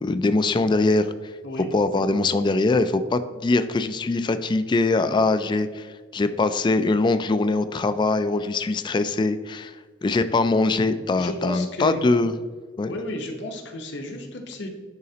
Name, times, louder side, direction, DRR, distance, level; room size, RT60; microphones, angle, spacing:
voice 1, 0.0-1.3 1.7-5.9 6.1-9.8 10.0-12.3 12.8-12.9, left 3 dB, 25° left, 11 dB, 0.3 m, -22 dB
voice 2, 1.4-2.0 11.2-12.1 12.9-14.7, left 1 dB, 65° left, 3 dB, 1.0 m, -32 dB
10.5 x 4.0 x 2.8 m, 1.4 s
head